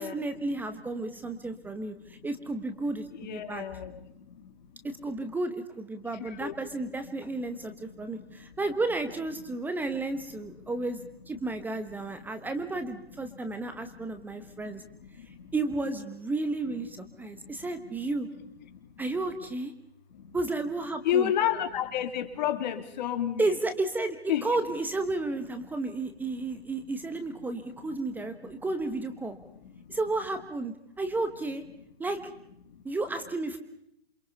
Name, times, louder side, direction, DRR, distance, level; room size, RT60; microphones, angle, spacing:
voice 1, 0.0-3.0 3.3-3.6 4.8-11.0 11.3-14.8 15.5-18.3 19.0-19.7 20.3-21.3 23.4-29.4 29.9-31.6 32.0-32.2 32.8-33.6, right 2 dB, 5° right, 8 dB, 1.2 m, -32 dB
voice 2, 1.4-1.7 2.0-2.3 3.1-4.9 6.0-6.5 7.6-8.5 10.1-10.5 11.0-11.1 12.2-12.5 13.2-15.5 17.2-18.1 18.7-19.0 20.1-20.4 21.0-23.6 24.3-24.5 27.8-28.7 29.6-30.0 32.6-32.8, left 10 dB, 45° left, 8 dB, 3.1 m, -34 dB
28.0 x 26.0 x 5.5 m, 0.75 s
hypercardioid pair, 140°, 30 cm